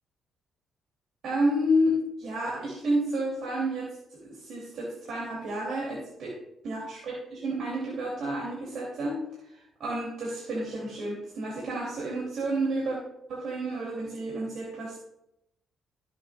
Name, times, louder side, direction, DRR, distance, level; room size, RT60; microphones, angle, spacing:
voice 1, 1.2-6.3 6.6-9.2 9.5-13.0 13.3-15.0, equal, 65° right, -4 dB, 3.0 m, -30 dB
15.0 x 7.4 x 2.5 m, 0.83 s
cardioid pair, 90°, 0 cm